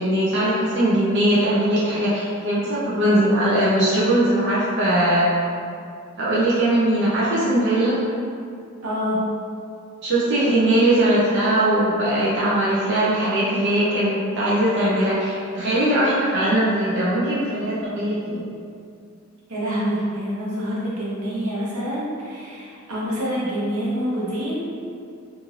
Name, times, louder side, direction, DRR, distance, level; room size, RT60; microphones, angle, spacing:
voice 1, 0.0-5.3 6.2-8.0 10.0-18.4, right 1 dB, 55° right, -9 dB, 0.6 m, -20 dB
voice 2, 8.8-9.2 19.5-24.7, equal, 85° right, -7 dB, 0.8 m, -26 dB
2.6 x 2.4 x 3.1 m, 2.4 s
head